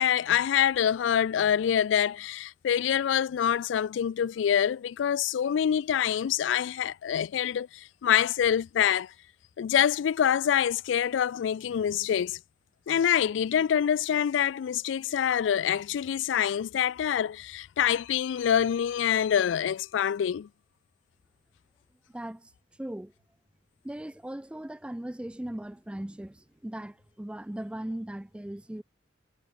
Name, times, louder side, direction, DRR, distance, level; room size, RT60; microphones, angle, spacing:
voice 1, 0.0-9.1 9.6-12.4 12.9-20.5, left 9 dB, 80° left, 0.3 m, -26 dB
voice 2, 22.1-22.5 22.8-23.1 23.8-28.8, right 1 dB, 5° right, 0.3 m, -38 dB
head